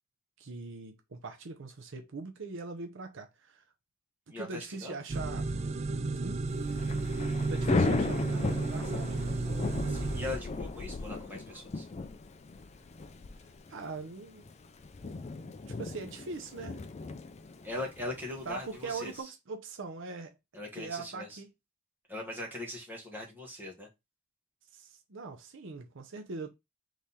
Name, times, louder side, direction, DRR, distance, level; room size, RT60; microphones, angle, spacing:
voice 1, 0.4-3.6 4.4-5.5 6.1-6.4 7.4-9.2 11.5-11.6 13.7-14.5 15.0-15.2 15.8-16.8 18.5-20.3 20.8-21.5 24.7-26.5, right 4 dB, 65° right, 0.7 m, -41 dB
voice 2, 4.3-5.0 9.9-11.9 17.6-19.3 20.5-21.4 22.1-23.9, left 2 dB, 10° right, 1.6 m, -40 dB
sound 1, 5.1-10.4, right 3 dB, 30° right, 0.4 m, -32 dB
Thunder / Rain, 6.5-19.2, left 3 dB, 30° left, 0.4 m, -36 dB
3.7 x 3.2 x 4.2 m
head